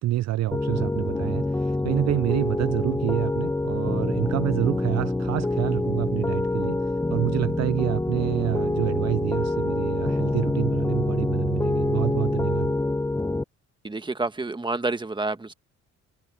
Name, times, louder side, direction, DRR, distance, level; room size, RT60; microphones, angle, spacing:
voice 1, 0.0-6.8 7.1-12.7, right 15 dB, 60° right, 0.5 m, -27 dB
Piano, 0.5-13.4, left 2 dB, 10° left, 0.8 m, -26 dB
voice 2, 13.8-15.5, right 3 dB, 15° right, 1.5 m, -28 dB
cardioid pair, 90°, 30 cm